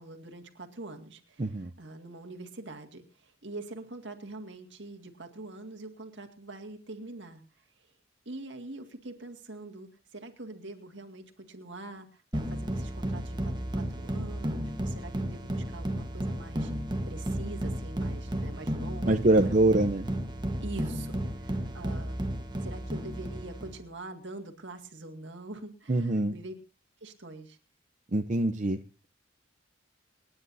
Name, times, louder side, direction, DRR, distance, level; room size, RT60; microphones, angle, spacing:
voice 1, 0.0-7.9 8.3-20.0 20.6-22.3 22.6-26.5 27.0-27.6, right 2 dB, 65° right, 5 dB, 2.2 m, -44 dB
voice 2, 1.4-1.7 19.1-20.1 25.9-26.4 28.1-28.8, right 2 dB, 40° right, 6 dB, 0.7 m, -24 dB
sound 1, 12.3-23.8, right 1 dB, 20° right, 1.2 m, -33 dB
28.0 x 10.0 x 2.7 m, 0.33 s
head